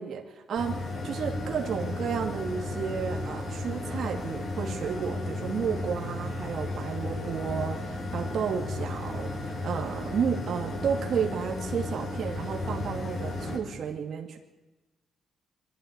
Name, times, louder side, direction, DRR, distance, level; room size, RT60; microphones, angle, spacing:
voice 1, 0.0-14.4, right 7 dB, 60° right, 1 dB, 2.5 m, -32 dB
sound 1, 0.6-13.6, left 2 dB, 55° left, 6.7 m, -34 dB
24.0 x 12.5 x 9.7 m, 1.1 s
cardioid pair, 90°, 0 cm